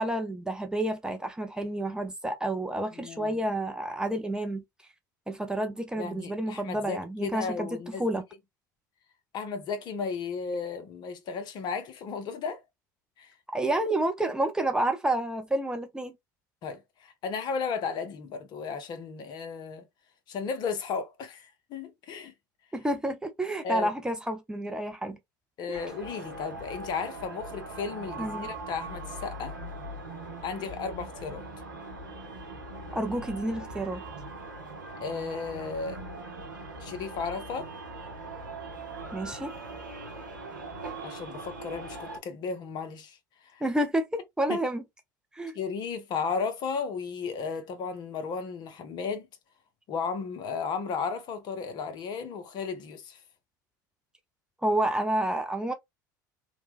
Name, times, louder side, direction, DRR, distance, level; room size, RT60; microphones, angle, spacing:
voice 1, 0.0-4.6 5.3-8.2 13.5-16.2 22.7-25.2 25.7-25.8 28.2-28.5 32.9-34.0 39.1-39.5 43.6-44.8 45.3-45.6 54.6-55.7, right 1 dB, 5° right, 0.5 m, -29 dB
voice 2, 2.9-3.4 6.0-8.0 9.3-12.6 13.2-13.3 16.6-19.9 20.3-22.3 23.6-23.9 25.6-29.5 30.4-31.4 35.0-36.0 36.8-37.7 41.0-43.2 43.5-43.6 44.5-44.6 45.5-49.3 49.9-53.2, left 5 dB, 45° left, 0.8 m, -34 dB
sound 1, 25.7-42.2, right 2 dB, 85° right, 0.7 m, -41 dB
3.0 x 2.2 x 2.4 m
figure-of-eight pair, 70°, 10 cm